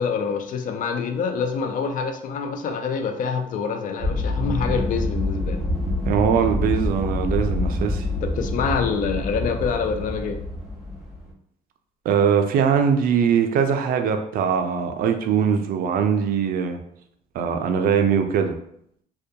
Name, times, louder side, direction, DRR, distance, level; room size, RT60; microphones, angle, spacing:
voice 1, 0.0-5.6 8.2-10.4, left 6 dB, 50° left, 5 dB, 0.4 m, -26 dB
sound 1, 4.0-11.3, left 1 dB, 5° right, 0.7 m, -26 dB
voice 2, 6.0-8.1 12.1-16.8 17.3-18.6, right 7 dB, 60° right, 6 dB, 0.4 m, -21 dB
2.2 x 2.2 x 2.7 m, 0.70 s
cardioid pair, 110°, 17 cm